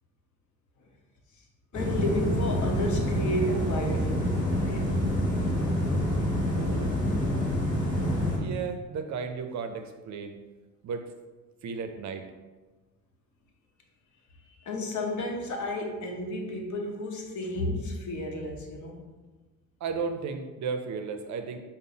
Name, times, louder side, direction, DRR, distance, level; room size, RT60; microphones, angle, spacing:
voice 1, 1.7-4.9 14.4-19.1, left 1 dB, 55° left, 2 dB, 0.8 m, -32 dB
sound 1, 1.7-8.4, equal, 15° left, 1.4 m, -27 dB
voice 2, 6.5-7.0 8.4-10.4 10.8-11.1 11.6-12.3 19.8-21.6, right 5 dB, 55° right, 7 dB, 0.5 m, -34 dB
3.7 x 2.0 x 3.8 m, 1.2 s
supercardioid pair, 70°, 36 cm